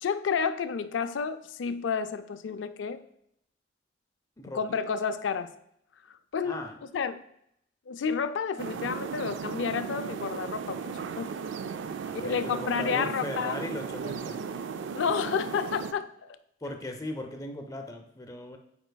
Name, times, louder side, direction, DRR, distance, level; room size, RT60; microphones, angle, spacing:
voice 1, 0.0-3.0 4.5-5.5 6.1-6.6 6.9-7.2 7.9-11.3 12.1-13.5 14.9-16.1, left 6 dB, 75° left, 11 dB, 0.4 m, -30 dB
voice 2, 4.4-4.8 6.4-6.8 12.0-14.4 16.6-18.6, left 1 dB, 20° left, 4 dB, 0.6 m, -38 dB
sound 1, 8.6-15.9, right 6 dB, 70° right, 0.3 m, -36 dB
9.3 x 4.8 x 2.3 m, 0.74 s
head